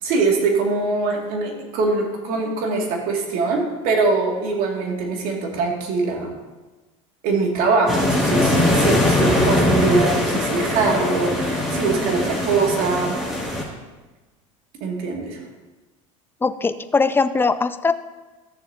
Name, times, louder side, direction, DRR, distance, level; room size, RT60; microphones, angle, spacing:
voice 1, 0.0-6.3 7.2-13.2 14.8-15.4, right 3 dB, 55° right, 0 dB, 2.5 m, -22 dB
sound 1, 7.9-13.6, left 1 dB, 5° right, 2.6 m, -21 dB
voice 2, 16.4-17.9, left 4 dB, 15° left, 11 dB, 0.6 m, -20 dB
14.0 x 6.9 x 2.9 m, 1.2 s
hypercardioid pair, 85°, 17 cm